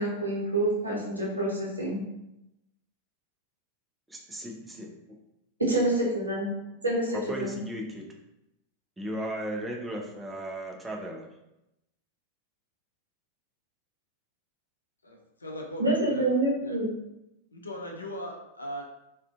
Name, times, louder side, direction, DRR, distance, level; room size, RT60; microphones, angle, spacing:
voice 1, 0.0-2.0 5.6-6.5 6.8-7.6 15.8-16.9, right 1 dB, 80° right, -4 dB, 0.7 m, -27 dB
voice 2, 4.1-5.2 7.1-8.1 9.0-11.3, right 1 dB, 10° right, -1 dB, 0.4 m, -36 dB
voice 3, 15.0-16.8 17.5-18.8, equal, 75° left, 1 dB, 0.4 m, -39 dB
2.4 x 2.2 x 2.3 m, 0.88 s
figure-of-eight pair, 90°, 0 cm